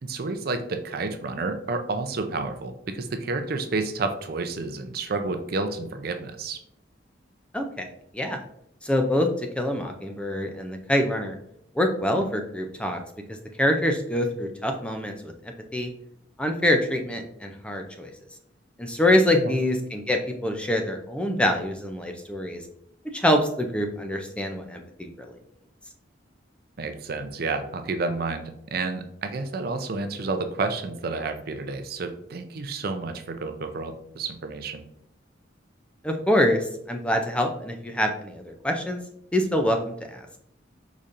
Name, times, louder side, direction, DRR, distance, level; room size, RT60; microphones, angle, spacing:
voice 1, 0.0-6.6 19.3-19.6 26.8-34.8, right 3 dB, 55° right, 7 dB, 0.5 m, -30 dB
voice 2, 7.5-7.9 8.1-8.4 8.8-9.3 9.6-11.3 11.7-13.0 13.3-15.3 15.7-15.9 16.4-18.1 18.8-22.6 23.1-25.4 36.0-39.0 39.3-40.2, left 1 dB, 5° left, 4 dB, 0.4 m, -25 dB
5.0 x 4.1 x 2.5 m, 0.73 s
head